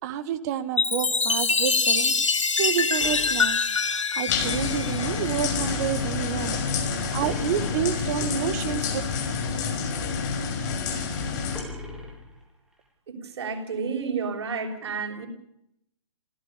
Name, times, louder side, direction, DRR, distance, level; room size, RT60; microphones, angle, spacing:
voice 1, 0.0-3.6 3.9-6.6 7.1-8.9, right 10 dB, 35° right, 11 dB, 2.0 m, -29 dB
Chime, 0.8-5.5, left 4 dB, 80° left, 2.1 m, -24 dB
sound 1, 3.0-4.4 7.2-8.4 11.5-12.9, left 1 dB, 5° right, 4.4 m, -41 dB
sound 2, 4.3-11.6, left 5 dB, 35° left, 5.7 m, -28 dB
voice 2, 13.1-15.3, right 5 dB, 55° right, 3 dB, 6.7 m, -31 dB
27.5 x 16.5 x 7.0 m, 0.77 s
figure-of-eight pair, 130°, 16 cm